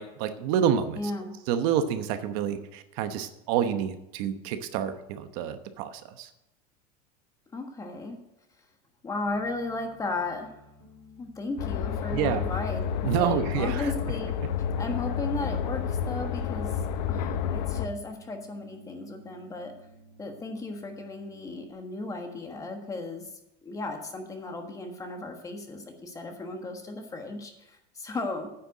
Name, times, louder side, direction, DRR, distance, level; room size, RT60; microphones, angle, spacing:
voice 1, 0.0-1.0 1.5-6.3 12.1-12.4 13.0-13.9, right 9 dB, 60° right, 9 dB, 1.0 m, -28 dB
voice 2, 1.0-1.3 7.5-8.2 9.0-10.6 11.2-14.3 14.8-16.7 17.1-19.7 20.2-23.3 23.6-28.5, left 2 dB, 15° left, 4 dB, 1.4 m, -35 dB
Piano, 9.2-21.7, left 1 dB, 35° right, 2.1 m, -54 dB
sound 1, 11.6-17.9, left 8 dB, 75° left, 0.8 m, -30 dB
9.6 x 6.8 x 7.6 m, 0.89 s
supercardioid pair, 155°, 21 cm